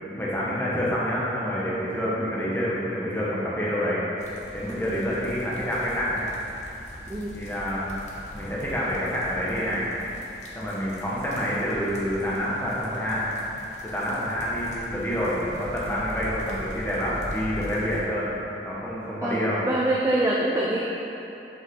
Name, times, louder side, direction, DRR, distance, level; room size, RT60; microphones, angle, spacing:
voice 1, 0.0-4.0 4.5-6.3 7.3-7.9 8.3-9.9 10.5-13.3 13.8-18.3 18.6-19.6, equal, 10° left, -7 dB, 1.1 m, -27 dB
sound 1, 4.2-18.0, equal, 40° left, 0.8 m, -42 dB
voice 2, 7.1-7.4 19.2-20.8, right 1 dB, 15° right, -4 dB, 0.4 m, -26 dB
6.2 x 5.3 x 3.7 m, 2.9 s
head